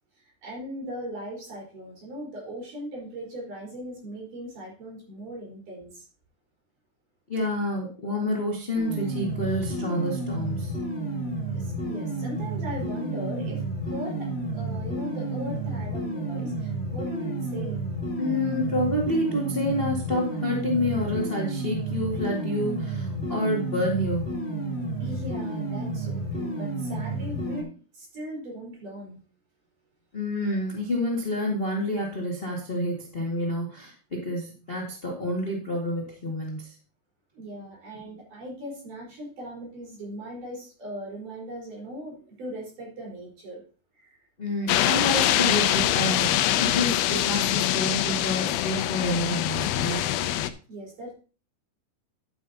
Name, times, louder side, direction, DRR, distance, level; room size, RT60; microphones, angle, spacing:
voice 1, 0.4-6.1 11.5-17.8 25.0-29.2 37.3-43.6 43.9-44.2 50.7-51.1, equal, 50° right, -2 dB, 6.0 m, -39 dB
voice 2, 7.3-10.8 18.2-24.4 30.1-36.7 44.4-46.3 46.6-50.1, left 1 dB, 30° left, -3 dB, 0.9 m, -28 dB
sound 1, 8.8-27.6, right 2 dB, 15° left, 3.2 m, -31 dB
sound 2, 44.7-50.5, left 13 dB, 85° left, 2.1 m, -24 dB
11.0 x 9.2 x 2.8 m, 0.36 s
omnidirectional pair, 4.8 m